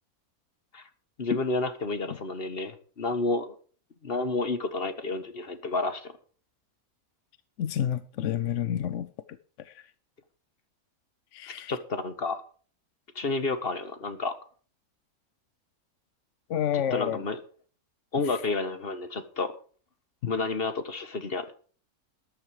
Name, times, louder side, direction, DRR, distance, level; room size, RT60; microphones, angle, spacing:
voice 1, 1.2-3.6 4.0-6.1 11.7-12.4 13.1-14.3 16.7-17.4 18.1-19.5 20.3-21.5, left 3 dB, 40° left, 1.5 m, -30 dB
voice 2, 7.6-9.1 9.6-9.8 11.3-11.8 16.5-17.2 18.3-18.4 20.2-20.3, left 10 dB, 60° left, 0.9 m, -29 dB
13.5 x 10.5 x 4.9 m
omnidirectional pair, 1.6 m